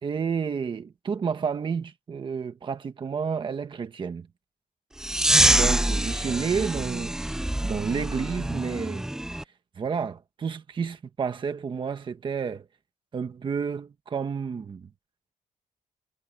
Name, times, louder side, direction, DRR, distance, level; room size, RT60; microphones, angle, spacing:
voice 1, 0.0-4.3 5.5-7.1 7.6-9.0 9.7-12.6 13.1-14.9, right 6 dB, 35° right, 1.2 m, -30 dB
sound 1, 5.0-9.4, right 1 dB, 5° right, 0.4 m, -25 dB
wide cardioid pair, 155°, 14 cm